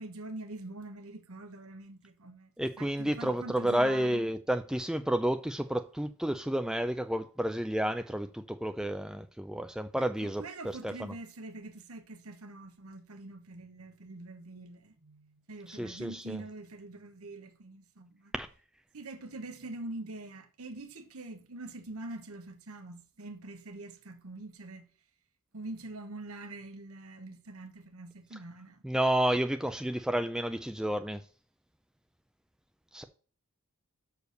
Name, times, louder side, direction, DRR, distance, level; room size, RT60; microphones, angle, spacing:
voice 1, 0.0-4.3 10.0-18.3 18.9-24.9 25.5-28.8, right 2 dB, 80° right, 1.1 m, -44 dB
voice 2, 2.6-10.4 10.8-10.9 15.7-16.4 18.3-18.5 28.8-31.2 32.9-33.0, right 1 dB, 5° right, 0.3 m, -30 dB
6.6 x 4.8 x 6.5 m
head